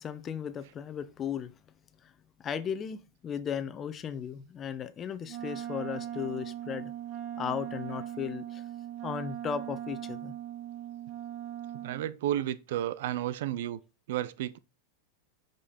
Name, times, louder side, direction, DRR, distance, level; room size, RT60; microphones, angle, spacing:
voice 1, 0.0-1.5 2.0-2.1 2.4-6.9 7.4-8.6 9.0-10.3, left 8 dB, 25° left, 0.9 m, -36 dB
Wind instrument woodwind instrument, 5.3-12.1, right 11 dB, 40° right, 1.2 m, -39 dB
voice 2, 11.8-13.8 14.1-14.6, right 12 dB, 70° right, 0.6 m, -32 dB
8.7 x 5.4 x 4.3 m
supercardioid pair, 125°, 0 cm